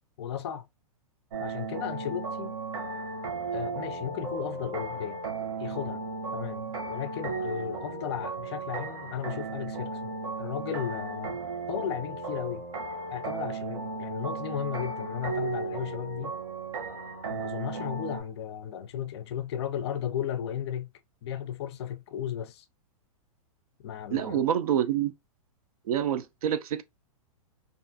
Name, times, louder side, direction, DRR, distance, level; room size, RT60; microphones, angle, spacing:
voice 1, 0.2-0.7 1.4-2.6 3.5-5.2 5.6-6.0 6.3-11.4 11.7-12.7 13.1-16.4 17.3-20.9 21.2-22.6 23.8-24.4, left 9 dB, 50° left, 0.4 m, -35 dB
sound 1, 1.3-18.2, right 3 dB, 65° right, 0.9 m, -35 dB
voice 2, 24.1-25.1 25.9-26.8, right 10 dB, 80° right, 0.4 m, -27 dB
2.5 x 2.3 x 2.5 m
hypercardioid pair, 150°, 18 cm